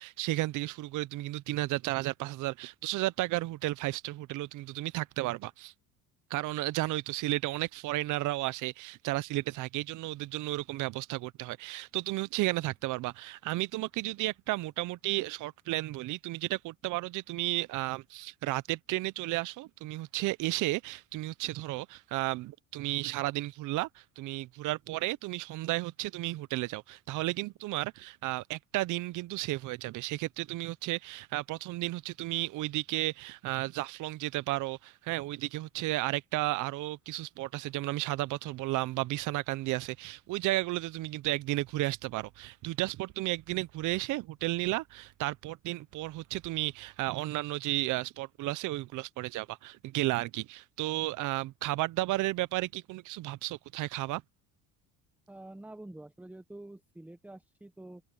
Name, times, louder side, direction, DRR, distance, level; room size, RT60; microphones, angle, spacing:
voice 1, 0.0-5.7 6.3-54.2, right 18 dB, 60° right, 0.6 m, -33 dB
voice 2, 55.3-58.0, right 1 dB, 5° right, 0.9 m, -47 dB
supercardioid pair, 95°, 34 cm